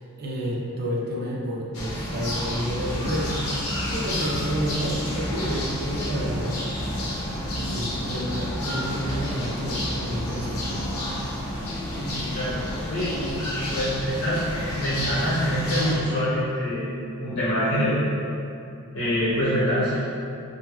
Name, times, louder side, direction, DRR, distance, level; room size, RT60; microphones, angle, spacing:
voice 1, 0.0-3.3 3.9-6.6 7.7-10.8, equal, 45° right, -4 dB, 0.4 m, -30 dB
sound 1, 1.7-16.0, left 1 dB, 75° left, 0.7 m, -30 dB
sound 2, 2.6-11.2, right 1 dB, 25° left, 1.1 m, -36 dB
voice 2, 11.9-12.6 12.9-14.4 14.7-16.9 17.2-18.0 18.9-20.0, equal, 55° left, -12 dB, 1.0 m, -25 dB
3.4 x 2.1 x 2.9 m, 2.6 s
head